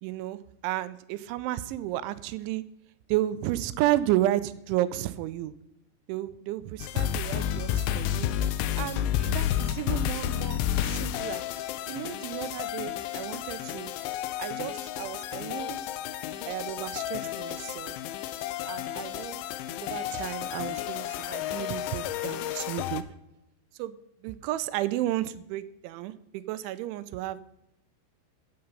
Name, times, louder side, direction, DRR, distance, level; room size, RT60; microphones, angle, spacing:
voice 1, 0.0-2.6 3.1-5.5 6.1-8.3 8.8-11.4 11.9-13.9 14.4-15.8 16.5-18.0 18.7-19.4 19.8-23.0 23.8-24.0 24.2-27.4, right 14 dB, 85° right, 15 dB, 2.9 m, -32 dB
sound 1, 6.8-23.0, left 11 dB, 80° left, 2.9 m, -31 dB
15.5 x 7.8 x 5.4 m, 0.84 s
omnidirectional pair, 5.6 m